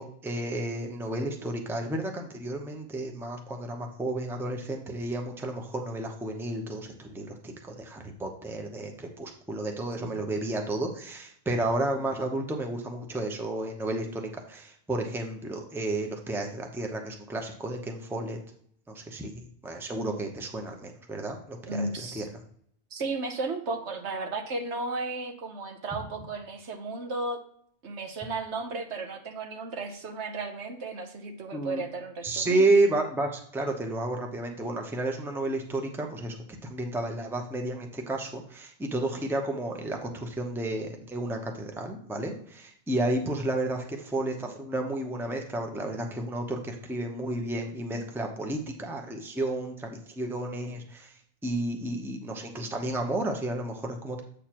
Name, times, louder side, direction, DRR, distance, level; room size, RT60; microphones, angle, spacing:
voice 1, 0.0-18.4 18.9-22.3 31.5-31.8 32.2-36.4 36.6-51.1 51.4-54.2, right 2 dB, ahead, 3 dB, 0.7 m, -31 dB
voice 2, 21.7-22.3 22.9-27.4 27.8-32.7, right 3 dB, 70° right, 5 dB, 1.2 m, -34 dB
8.3 x 6.7 x 3.0 m, 0.64 s
omnidirectional pair, 1.2 m